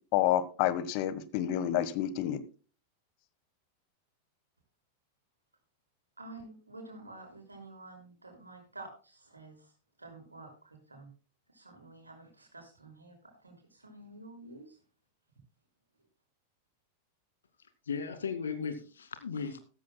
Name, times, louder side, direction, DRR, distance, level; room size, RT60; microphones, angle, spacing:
voice 1, 0.1-2.4, left 12 dB, 45° left, 15 dB, 1.3 m, -29 dB
voice 2, 6.2-9.7 10.0-11.1 11.5-14.8, right 2 dB, 80° right, 4 dB, 5.8 m, -50 dB
voice 3, 17.9-19.6, left 6 dB, 70° left, 9 dB, 2.3 m, -36 dB
16.0 x 14.5 x 2.2 m, 0.36 s
figure-of-eight pair, 90°, 0 cm